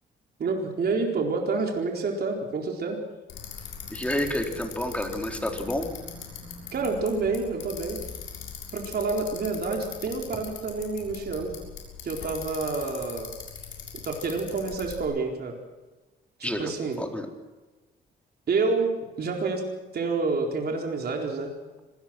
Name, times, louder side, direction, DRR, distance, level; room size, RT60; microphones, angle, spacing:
voice 1, 0.4-3.0 6.7-8.0 8.7-11.6 12.0-13.3 14.0-15.6 16.4-17.0 18.5-18.9 19.2-19.6 19.9-21.5, right 3 dB, 55° right, 1 dB, 4.3 m, -28 dB
Bicycle, 3.3-15.0, left 6 dB, 80° left, 6.9 m, -41 dB
voice 2, 3.9-5.9 16.4-16.7 17.0-17.3, left 1 dB, 5° left, 2 dB, 4.0 m, -29 dB
25.5 x 18.5 x 6.2 m, 1.2 s
cardioid pair, 90°, 20 cm